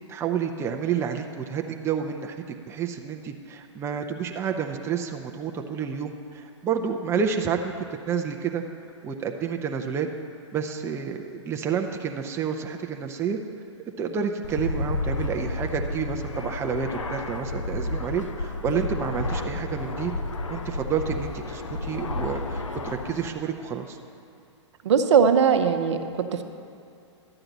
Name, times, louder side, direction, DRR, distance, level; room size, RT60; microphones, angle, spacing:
voice 1, 0.1-2.4 2.7-7.7 8.1-8.6 9.0-10.1 10.5-13.4 14.0-20.1 20.5-24.0, right 7 dB, 15° right, 4 dB, 0.5 m, -29 dB
Fixed-wing aircraft airplane, 14.4-23.3, left 2 dB, 85° left, 0.7 m, -31 dB
voice 2, 24.8-26.4, right 6 dB, 65° right, 7 dB, 0.7 m, -20 dB
11.5 x 8.8 x 4.0 m, 2.5 s
hypercardioid pair, 120°, 16 cm